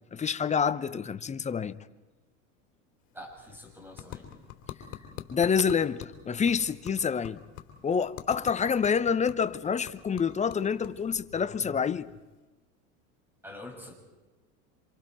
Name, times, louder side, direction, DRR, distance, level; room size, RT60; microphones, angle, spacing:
voice 1, 0.1-1.8 5.3-7.4 7.8-12.1, left 6 dB, 15° left, 0.8 m, -27 dB
sound 1, 3.0-12.4, left 10 dB, 50° left, 3.2 m, -47 dB
voice 2, 3.1-4.3 13.4-13.9, left 1 dB, 5° right, 6.6 m, -45 dB
27.0 x 26.0 x 4.6 m
hypercardioid pair, 85°, 42 cm